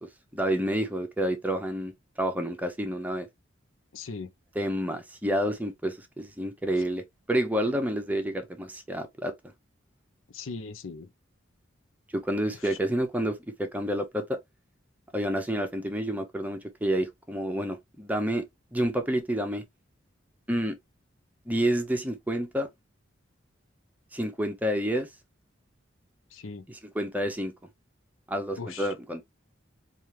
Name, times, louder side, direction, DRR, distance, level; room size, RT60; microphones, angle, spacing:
voice 1, 0.0-1.9 2.2-3.3 4.6-7.0 7.3-9.3 12.1-14.4 15.1-18.4 18.7-19.6 20.5-20.8 21.5-22.7 24.1-25.1 26.7-27.5 28.3-29.2, equal, 10° right, 0.7 m, -29 dB
voice 2, 3.9-4.3 6.8-6.9 10.3-11.1 12.5-12.8 26.3-26.7 28.6-28.9, left 4 dB, 85° left, 0.6 m, -39 dB
4.4 x 2.5 x 3.2 m
head